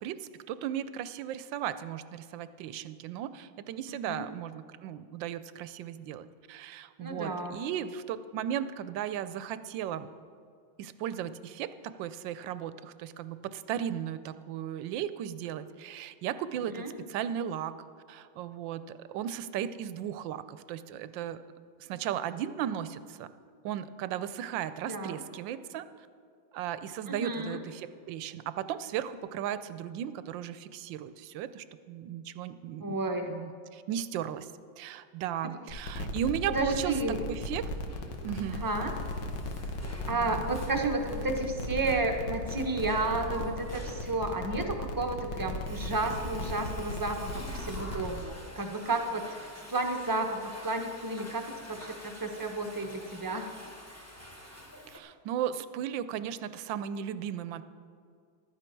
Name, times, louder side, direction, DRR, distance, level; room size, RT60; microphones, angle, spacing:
voice 1, 0.0-10.1 10.8-11.7 12.0-16.8 17.1-17.7 18.1-21.4 21.8-23.3 23.6-25.8 26.5-33.0 33.3-34.5 34.8-36.9 37.3-37.6 38.2-38.6 40.1-40.4 54.9-57.6, right 10 dB, 75° right, 13 dB, 1.2 m, -36 dB
voice 2, 3.9-4.2 7.0-7.6 16.7-16.9 24.8-25.2 27.1-27.6 32.8-33.3 36.5-37.2 38.6-38.9 40.1-49.3 49.7-53.5, right 2 dB, 25° right, 3 dB, 0.4 m, -32 dB
sound 1, 35.7-48.2, left 1 dB, 75° left, 1.9 m, -37 dB
Water / Toilet flush, 37.5-55.0, equal, 10° left, 0.7 m, -49 dB
15.0 x 12.0 x 4.5 m, 2.2 s
omnidirectional pair, 2.2 m